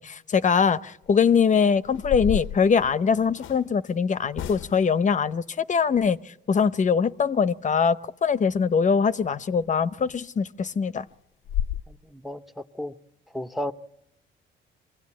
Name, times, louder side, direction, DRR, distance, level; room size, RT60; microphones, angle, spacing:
voice 1, 0.0-11.0, left 6 dB, 40° left, 0.7 m, -22 dB
sound 1, 1.0-1.3 1.9-3.6 4.3-5.0 9.5-9.7 10.1-10.2 10.6-10.7 11.1-11.2 11.5-11.8, left 10 dB, 80° left, 0.7 m, -31 dB
voice 2, 11.9-12.9 13.3-13.7, left 1 dB, ahead, 0.8 m, -33 dB
24.0 x 16.5 x 8.6 m
cardioid pair, 90°, 20 cm